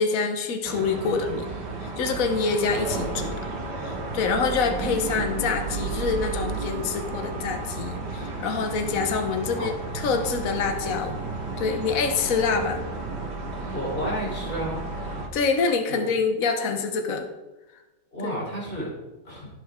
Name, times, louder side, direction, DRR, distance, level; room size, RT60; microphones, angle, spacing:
voice 1, 0.0-1.5 1.8-3.4 3.8-11.2 11.6-12.8 15.3-17.3 18.2-18.3, left 5 dB, 50° left, 5 dB, 1.4 m, -26 dB
sound 1, 0.6-15.3, right 3 dB, 65° right, 2.2 m, -32 dB
voice 2, 9.4-9.7 13.7-14.8 15.9-16.0 18.1-18.9 19.2-19.5, equal, 30° left, -5 dB, 4.3 m, -31 dB
16.0 x 6.8 x 3.7 m, 1.0 s
omnidirectional pair, 2.0 m